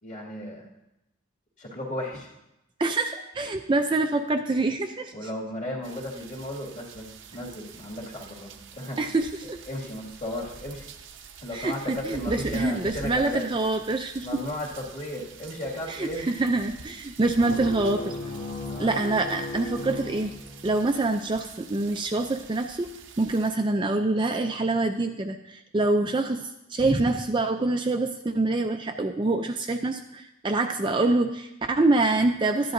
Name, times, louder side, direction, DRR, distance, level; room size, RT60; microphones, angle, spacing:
voice 1, 0.0-0.6 1.6-2.3 5.1-9.0 9.7-10.8 11.4-13.8 14.2-16.3 18.7-19.0, left 1 dB, 35° left, -3 dB, 2.2 m, -35 dB
voice 2, 2.8-5.1 9.0-9.6 11.5-14.4 15.9-18.2 18.8-20.3 20.6-22.9 23.2-32.7, right 2 dB, 25° right, 5 dB, 0.4 m, -25 dB
sound 1, 5.8-23.5, right 5 dB, 60° right, 0.7 m, -46 dB
sound 2, 17.3-20.9, left 2 dB, 90° left, 1.8 m, -36 dB
13.0 x 10.5 x 2.6 m, 0.90 s
head